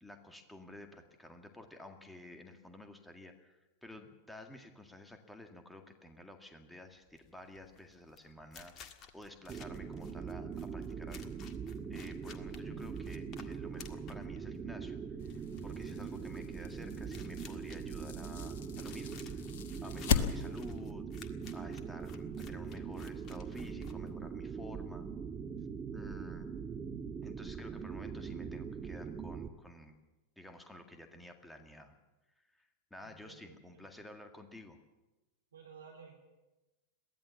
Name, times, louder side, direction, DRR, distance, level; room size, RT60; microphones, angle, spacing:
voice 1, 0.0-11.3 11.9-19.4 19.8-25.1 25.9-26.5 27.2-30.0 30.4-31.9 32.4-34.8, left 1 dB, 5° left, 5 dB, 1.9 m, -52 dB
sound 1, 7.1-24.5, left 6 dB, 30° left, 1.7 m, -56 dB
sound 2, 9.5-29.5, right 6 dB, 20° right, 1.3 m, -42 dB
voice 2, 12.3-12.9 33.0-33.9 35.5-36.4, right 6 dB, 70° right, 1 dB, 2.9 m, -56 dB
sound 3, 15.2-20.8, left 7 dB, 55° left, 1.4 m, -38 dB
22.5 x 16.0 x 7.2 m, 1.1 s
figure-of-eight pair, 90°, 0 cm